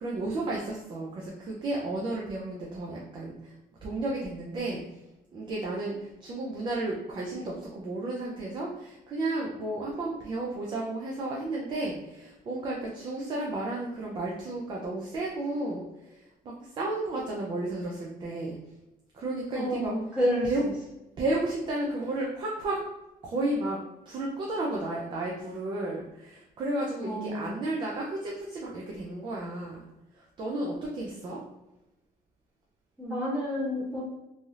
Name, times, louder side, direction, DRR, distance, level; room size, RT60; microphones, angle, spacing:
voice 1, 0.0-3.6 3.8-4.8 5.3-18.6 19.1-19.9 20.4-20.7 21.2-22.8 23.2-29.8 30.1-31.4, right 2 dB, 30° right, -2 dB, 0.4 m, -33 dB
voice 2, 19.5-20.5 27.0-27.5 33.0-34.0, equal, 5° right, -9 dB, 1.2 m, -29 dB
3.2 x 2.7 x 2.3 m, 0.94 s
cardioid pair, 180°, 16 cm